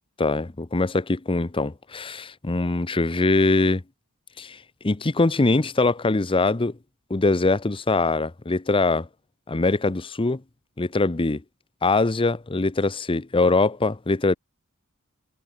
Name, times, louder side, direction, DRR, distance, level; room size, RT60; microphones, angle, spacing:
voice 1, 0.2-3.8 4.4-4.6 4.8-6.8 7.1-9.1 9.5-10.4 10.8-11.4 11.8-14.3, left 3 dB, 25° left, 0.7 m, -22 dB
head